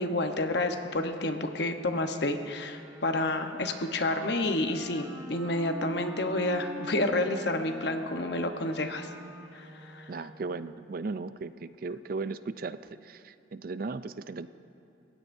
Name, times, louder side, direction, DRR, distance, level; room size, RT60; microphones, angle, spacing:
voice 1, 0.0-9.1 9.5-10.1, left 2 dB, 60° left, 6 dB, 1.0 m, -30 dB
Wind instrument woodwind instrument, 2.5-10.6, equal, 15° right, 1.3 m, -45 dB
voice 2, 10.1-14.5, right 3 dB, 50° right, 13 dB, 0.4 m, -36 dB
30.0 x 16.0 x 2.7 m, 2.8 s
head